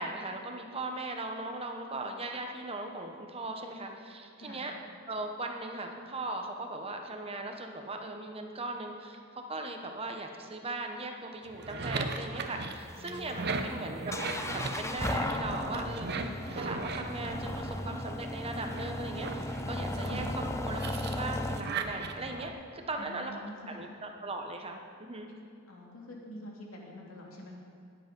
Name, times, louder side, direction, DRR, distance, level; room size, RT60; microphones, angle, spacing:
voice 1, 0.0-4.7 5.1-14.0 14.5-23.4 23.7-25.3, right 2 dB, 30° right, 4 dB, 1.1 m, -39 dB
sound 1, 11.5-18.1 18.6-22.5, right 3 dB, 50° right, 0.9 m, -38 dB
sound 2, 12.4-21.6, left 1 dB, 15° left, 0.6 m, -36 dB
voice 2, 13.0-13.6 23.0-23.9 25.7-27.5, left 1 dB, 75° left, -2 dB, 2.7 m, -46 dB
20.0 x 8.2 x 5.4 m, 2.3 s
head